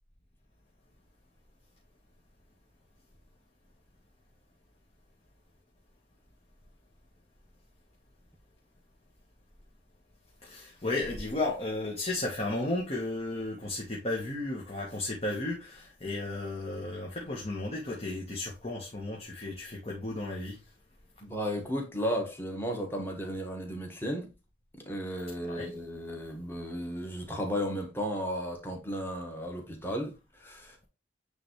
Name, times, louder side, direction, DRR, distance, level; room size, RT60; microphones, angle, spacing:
voice 1, 10.4-20.6 25.4-25.8, left 2 dB, 35° left, 1.4 m, -34 dB
voice 2, 21.2-24.3 24.8-30.9, equal, 10° left, 1.5 m, -34 dB
9.1 x 3.4 x 3.2 m
head